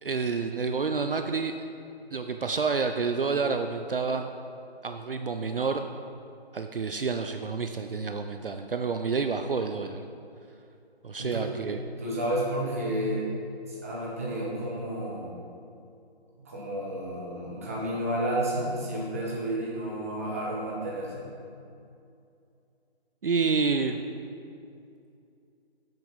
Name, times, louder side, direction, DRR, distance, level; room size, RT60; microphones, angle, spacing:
voice 1, 0.0-1.5 2.1-4.3 4.8-5.9 6.5-10.1 11.0-11.8 23.2-24.0, right 4 dB, 55° right, 6 dB, 0.5 m, -29 dB
voice 2, 11.2-11.5 12.0-13.3 13.6-15.3 16.4-21.2, right 1 dB, 15° right, -5 dB, 1.1 m, -31 dB
8.0 x 6.9 x 5.5 m, 2.5 s
figure-of-eight pair, 170°, 32 cm